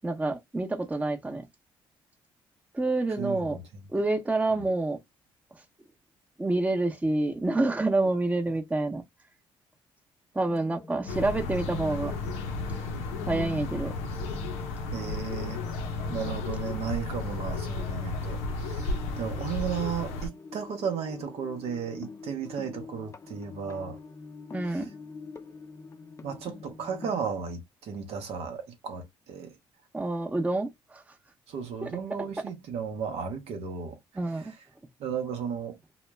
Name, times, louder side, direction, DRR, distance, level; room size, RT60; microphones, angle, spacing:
voice 1, 0.0-1.5 2.7-3.6 3.9-5.0 6.4-9.0 10.3-12.1 13.3-13.9 24.5-24.9 29.9-31.0 31.8-31.9 34.2-34.5, right 2 dB, 15° right, 0.7 m, -28 dB
voice 2, 3.2-3.9 4.6-4.7 14.9-15.6 16.1-24.0 24.7-24.8 26.2-29.6 31.5-34.0 34.4-34.5 35.0-35.8, right 6 dB, 70° right, 0.7 m, -34 dB
sound 1, 10.5-27.3, left 3 dB, 25° left, 0.4 m, -45 dB
sound 2, 11.1-20.3, left 3 dB, 85° left, 0.6 m, -33 dB
2.2 x 2.0 x 3.3 m
hypercardioid pair, 55°, 11 cm